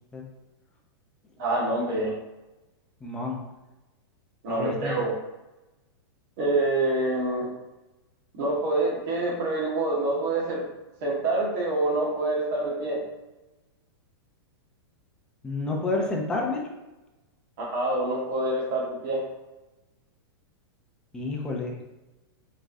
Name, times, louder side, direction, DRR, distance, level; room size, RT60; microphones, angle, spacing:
voice 1, 1.4-2.1 4.4-5.1 6.4-7.5 8.3-10.7 11.0-13.0 17.6-19.2, right 2 dB, 45° right, -3 dB, 1.5 m, -26 dB
voice 2, 3.0-3.4 4.5-5.0 15.4-16.7 21.1-21.7, left 3 dB, 5° left, -2 dB, 0.5 m, -29 dB
5.2 x 3.7 x 2.6 m, 1.0 s
supercardioid pair, 170°, 13 cm